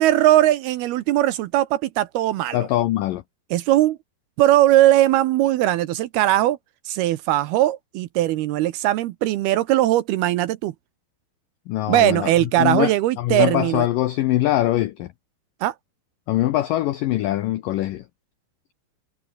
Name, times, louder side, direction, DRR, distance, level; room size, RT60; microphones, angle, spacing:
voice 1, 0.0-2.6 3.5-4.0 4.4-6.6 6.9-10.7 11.9-13.9 15.6-15.7, right 14 dB, 75° right, 2.5 m, -19 dB
voice 2, 2.5-3.2 11.7-12.9 13.2-15.1 16.3-18.1, left 14 dB, 80° left, 1.9 m, -22 dB
omnidirectional pair, 5.1 m